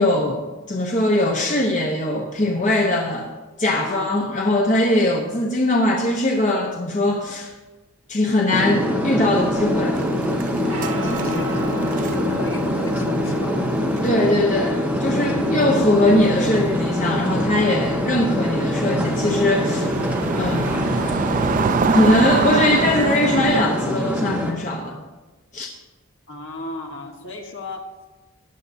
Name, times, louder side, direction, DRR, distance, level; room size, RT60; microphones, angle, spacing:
voice 1, 0.0-3.3 3.6-7.5 8.1-10.0 14.0-19.9 20.4-20.8 21.9-25.0 25.5-25.7, left 1 dB, 35° left, 1 dB, 0.9 m, -21 dB
sound 1, 8.5-24.5, equal, 5° right, 1.3 m, -24 dB
sound 2, 9.4-15.0 15.3-15.5 16.2-23.6, right 5 dB, 40° right, 0.3 m, -27 dB
sound 3, 9.4-17.9, right 2 dB, 75° right, 2.1 m, -38 dB
voice 2, 10.6-13.6 15.3-15.6 26.3-27.8, left 1 dB, 60° left, 2 dB, 1.5 m, -35 dB
15.0 x 10.5 x 2.7 m, 1.2 s
head